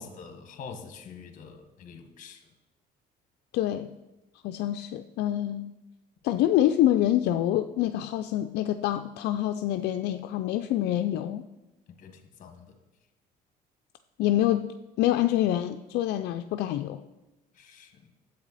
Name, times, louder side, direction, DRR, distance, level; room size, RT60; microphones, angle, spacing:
voice 1, 0.0-2.4 11.9-12.8 17.5-18.1, left 5 dB, 50° left, 7 dB, 1.4 m, -45 dB
voice 2, 3.5-3.9 4.4-5.7 6.2-11.5 14.2-14.7 15.0-17.0, left 12 dB, 80° left, 8 dB, 0.4 m, -26 dB
10.5 x 8.0 x 4.1 m, 1.0 s
cardioid pair, 110°, 17 cm